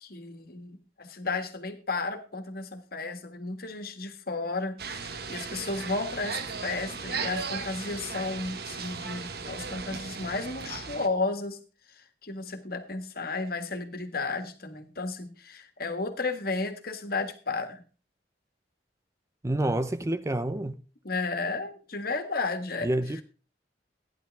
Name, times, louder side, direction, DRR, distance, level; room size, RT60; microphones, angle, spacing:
voice 1, 0.0-11.6 12.2-17.8 21.0-22.9, left 3 dB, 60° left, 1.7 m, -33 dB
sound 1, 4.8-11.1, right 5 dB, 65° right, 1.3 m, -36 dB
voice 2, 19.4-20.8 22.8-23.2, right 1 dB, 15° right, 0.6 m, -28 dB
15.0 x 10.5 x 3.5 m
head